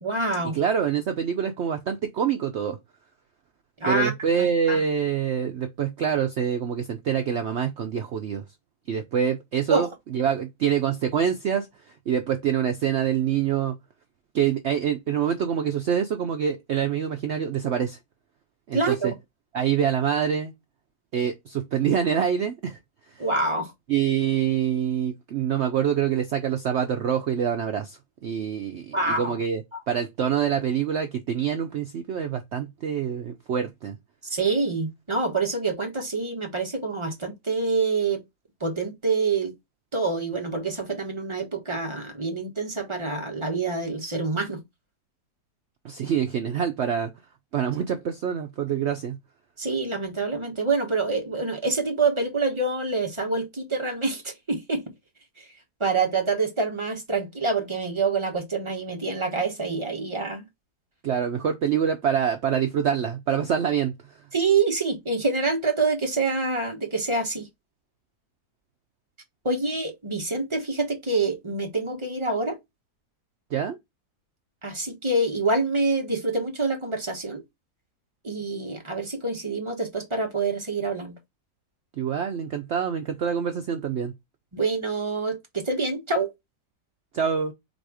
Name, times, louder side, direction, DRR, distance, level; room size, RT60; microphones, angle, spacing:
voice 1, 0.0-0.6 3.8-4.1 4.4-4.8 9.7-9.9 18.7-19.1 23.2-23.7 28.9-29.3 34.2-38.2 38.6-39.5 39.9-44.6 49.6-54.9 55.8-60.4 64.3-67.5 69.4-72.6 74.6-77.4 78.2-81.1 84.5-86.3, right 3 dB, 20° right, 0.9 m, -26 dB
voice 2, 0.5-2.8 3.9-8.4 8.9-11.7 12.1-13.8 14.3-18.0 18.7-19.1 19.5-20.5 21.1-22.8 23.2-23.3 23.9-34.0 45.8-47.1 47.5-49.2 61.0-63.9 73.5-73.8 82.0-84.1 87.1-87.5, right 8 dB, 65° right, 0.6 m, -25 dB
4.1 x 2.6 x 4.7 m
omnidirectional pair, 1.7 m